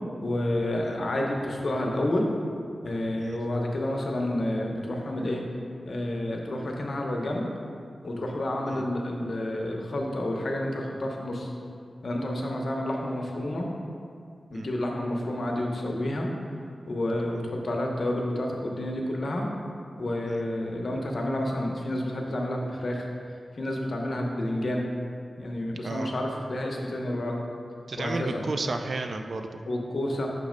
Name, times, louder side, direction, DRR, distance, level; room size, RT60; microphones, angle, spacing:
voice 1, 0.2-2.2 2.8-5.4 5.8-7.5 8.0-11.5 12.0-13.7 14.5-16.3 16.9-19.4 20.0-23.1 23.6-24.9 25.4-27.4 28.0-28.4 29.7-30.3, left 1 dB, 60° left, 0 dB, 0.8 m, -29 dB
voice 2, 27.9-29.6, right 3 dB, 65° right, 6 dB, 0.4 m, -33 dB
6.7 x 3.2 x 5.0 m, 2.3 s
wide cardioid pair, 85°, 0 cm